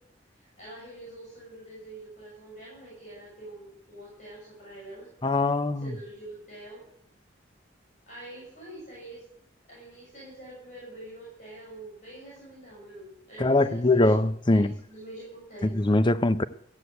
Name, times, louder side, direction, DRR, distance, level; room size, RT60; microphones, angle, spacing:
voice 1, 0.3-5.1 5.8-6.9 8.1-9.2 9.7-15.7, right 1 dB, 40° left, 6.9 m, -45 dB
voice 2, 5.2-6.0 13.4-14.7 15.6-16.4, left 2 dB, 25° left, 0.6 m, -22 dB
14.5 x 8.1 x 7.8 m
head